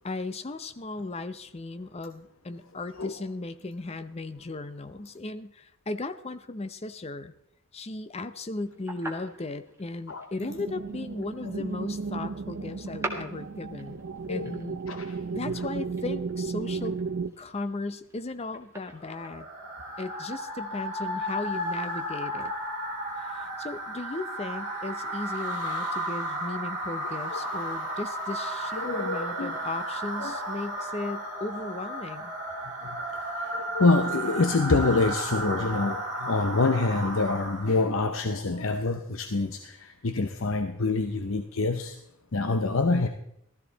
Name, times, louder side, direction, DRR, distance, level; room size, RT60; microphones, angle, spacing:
voice 1, 0.0-7.3 7.7-14.0 14.3-14.8 15.3-17.0 17.4-19.5 20.0-22.5 23.2-32.3, left 2 dB, 30° left, 11 dB, 0.6 m, -36 dB
sound 1, 8.6-19.3, right 2 dB, 10° right, 1.6 m, -43 dB
sound 2, 10.4-17.3, right 4 dB, 55° right, 0.4 m, -34 dB
voice 2, 14.9-15.2 28.8-29.5 30.2-30.4 32.8-42.0 42.3-43.1, left 3 dB, 65° left, 7 dB, 0.7 m, -26 dB
sound 3, 18.9-37.9, right 1 dB, 35° right, 3.0 m, -34 dB
15.0 x 13.5 x 4.0 m, 0.76 s
head